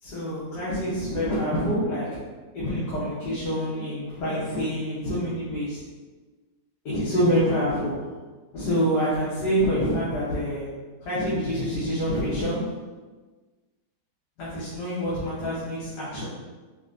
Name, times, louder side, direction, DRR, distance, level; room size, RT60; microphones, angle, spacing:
voice 1, 0.0-2.3 2.5-5.8 6.8-8.1 8.5-12.9 14.4-16.2, equal, 75° left, -10 dB, 1.6 m, -27 dB
5.3 x 2.2 x 2.5 m, 1.3 s
omnidirectional pair, 1.8 m